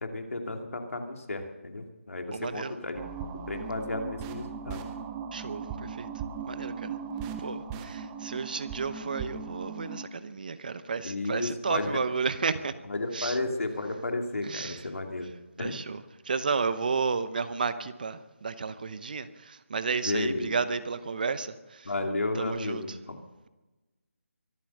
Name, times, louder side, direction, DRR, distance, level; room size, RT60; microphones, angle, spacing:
voice 1, 0.0-4.8 11.0-12.0 12.8-15.3 15.6-15.8 20.0-20.5 21.8-23.2, left 2 dB, 75° left, 4 dB, 2.6 m, -33 dB
voice 2, 2.3-2.7 5.3-6.1 6.5-6.9 7.4-12.7 13.1-13.4 14.4-14.8 15.6-16.0 16.3-21.9 22.4-22.8, right 5 dB, 40° right, 13 dB, 0.8 m, -32 dB
sound 1, 2.9-10.1, right 6 dB, 10° right, 0.5 m, -38 dB
24.0 x 8.5 x 6.6 m, 1.1 s
figure-of-eight pair, 170°, 8 cm